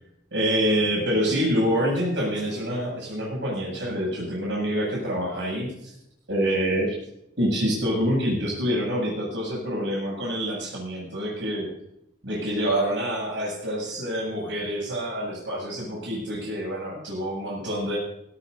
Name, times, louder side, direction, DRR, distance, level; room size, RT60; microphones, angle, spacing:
voice 1, 0.3-5.9 6.3-6.9 7.4-11.7 12.2-18.0, equal, 80° right, -5 dB, 7.9 m, -26 dB
19.5 x 18.5 x 2.8 m, 0.80 s
head